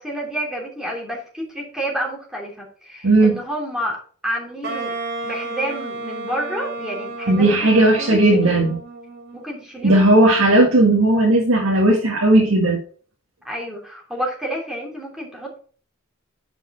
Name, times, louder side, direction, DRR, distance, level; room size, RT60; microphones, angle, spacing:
voice 1, 0.0-4.9 5.2-8.7 9.3-10.0 13.4-15.6, right 1 dB, 5° right, -2 dB, 3.1 m, -30 dB
voice 2, 3.0-3.4 7.3-8.8 9.8-12.8, right 2 dB, 85° right, -1 dB, 1.8 m, -15 dB
Wind instrument woodwind instrument, 4.6-9.6, right 2 dB, 50° right, 3.0 m, -32 dB
10.5 x 5.5 x 4.3 m, 0.43 s
head